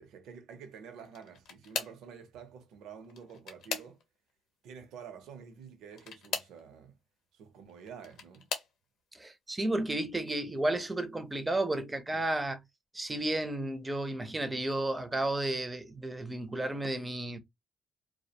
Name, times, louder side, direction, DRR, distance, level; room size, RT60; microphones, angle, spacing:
voice 1, 0.0-4.0 4.6-7.0 7.3-8.5, right 6 dB, 85° right, 0.6 m, -49 dB
sound 1, 1.0-2.1 3.0-4.3 5.9-6.6 7.7-8.8 9.5-9.9 10.3-10.4 11.8-11.9, left 6 dB, 80° left, 0.7 m, -39 dB
voice 2, 9.1-12.6 12.9-17.4, right 1 dB, 15° right, 0.5 m, -32 dB
2.3 x 2.1 x 2.8 m
cardioid pair, 90°, 0 cm